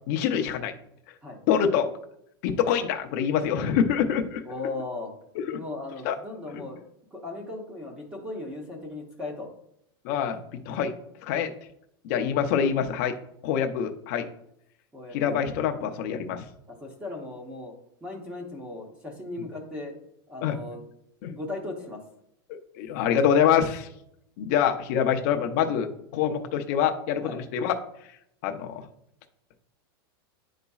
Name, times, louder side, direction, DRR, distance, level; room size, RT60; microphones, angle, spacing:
voice 1, 0.1-0.7 1.5-1.9 2.4-4.4 5.4-5.6 6.0-6.2 10.0-10.4 10.6-10.9 11.2-11.5 12.0-13.1 13.4-14.3 15.1-16.5 20.4-20.6 21.2-21.3 22.5-23.9 24.4-27.8 28.4-28.8, left 8 dB, 40° left, 5 dB, 0.6 m, -25 dB
voice 2, 4.4-5.1 5.5-6.8 7.1-9.5 14.9-15.4 16.7-17.7 18.0-20.0 20.3-20.8 21.3-22.0 27.2-27.4, left 2 dB, 10° right, 1 dB, 0.8 m, -37 dB
11.0 x 4.0 x 2.3 m, 0.75 s
supercardioid pair, 175°, 13 cm